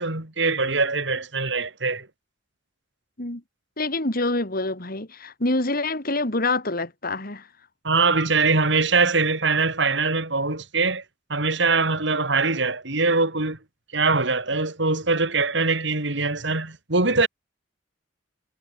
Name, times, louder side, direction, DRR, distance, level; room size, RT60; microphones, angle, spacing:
voice 1, 0.0-2.1 7.8-11.0 11.3-13.6 13.9-17.3, right 3 dB, 65° right, 3.8 m, -22 dB
voice 2, 3.8-7.5, left 2 dB, 50° left, 3.6 m, -26 dB
head